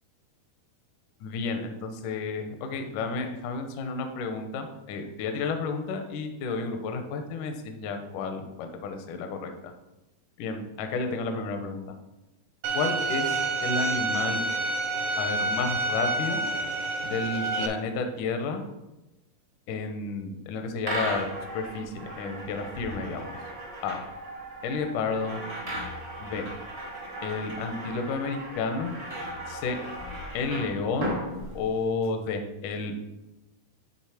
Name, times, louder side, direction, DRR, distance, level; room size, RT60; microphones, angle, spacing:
voice 1, 1.2-9.7 10.4-11.8 12.7-14.4 15.2-16.4 17.0-18.6 19.7-21.3 21.5-23.4 23.8-24.0 24.6-25.4 26.2-26.5 27.2-28.9 29.5-29.8 30.3-31.2 31.6-33.0, left 4 dB, 75° left, 5 dB, 1.8 m, -31 dB
Bowed string instrument, 12.6-17.7, right 2 dB, 70° right, 2.1 m, -28 dB
sound 1, 20.8-32.1, right 1 dB, 55° right, 0.6 m, -36 dB
10.0 x 3.6 x 4.8 m, 0.98 s
omnidirectional pair, 4.6 m